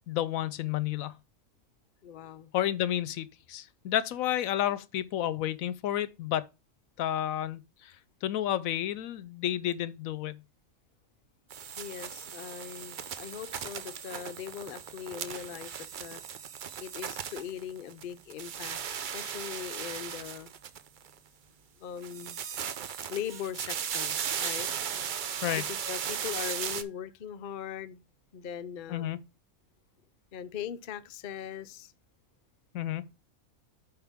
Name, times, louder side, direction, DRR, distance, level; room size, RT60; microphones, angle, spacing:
voice 1, 0.1-1.2 2.5-6.5 7.0-7.9 8.2-10.4 25.4-25.6 28.9-29.2 32.7-33.1, left 12 dB, 75° left, 1.0 m, -31 dB
voice 2, 2.0-2.5 11.8-16.2 16.8-20.5 21.8-22.4 23.1-24.7 25.5-28.0 28.3-29.2 30.3-31.9, left 9 dB, 50° left, 0.6 m, -40 dB
sound 1, 11.5-18.0 18.3-21.1 22.0-26.8, right 8 dB, 55° right, 0.5 m, -37 dB
8.1 x 5.2 x 3.5 m
omnidirectional pair, 1.5 m